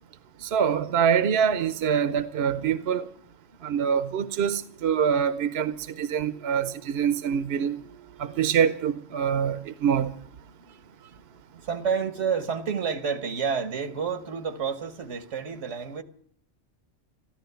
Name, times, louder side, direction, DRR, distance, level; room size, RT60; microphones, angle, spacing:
voice 1, 0.4-3.1 3.6-7.8 8.2-10.1, right 7 dB, 65° right, 1.0 m, -25 dB
voice 2, 1.9-3.1 3.6-4.3 5.7-8.8 11.0-11.1 11.6-16.0, right 6 dB, 85° right, 1.6 m, -33 dB
14.0 x 12.0 x 8.0 m
omnidirectional pair, 1.2 m